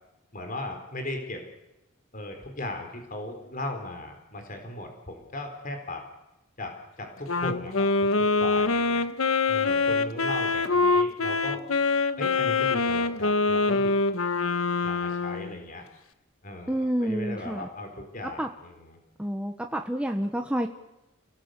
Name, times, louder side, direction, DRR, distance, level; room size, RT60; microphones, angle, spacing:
voice 1, 0.3-1.4 2.1-6.0 6.6-8.1 8.4-9.0 9.5-11.6 12.2-13.9 14.8-15.8 16.4-19.0, left 1 dB, 40° left, 4 dB, 4.5 m, -37 dB
Wind instrument woodwind instrument, 7.3-15.5, left 3 dB, 90° left, 1.3 m, -25 dB
voice 2, 16.7-17.7 18.2-18.5 19.2-20.7, equal, 5° right, 4 dB, 1.1 m, -29 dB
30.0 x 18.0 x 8.2 m, 0.96 s
head